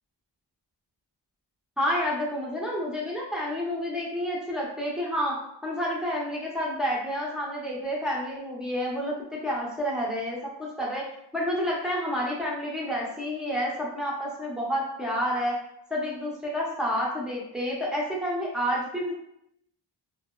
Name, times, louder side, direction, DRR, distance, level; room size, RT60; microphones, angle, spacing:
voice 1, 1.8-5.4 5.6-9.1 9.4-11.1 11.3-15.6 15.9-19.1, equal, ahead, -4 dB, 0.7 m, -29 dB
2.7 x 2.0 x 2.2 m, 0.77 s
wide cardioid pair, 80°, 46 cm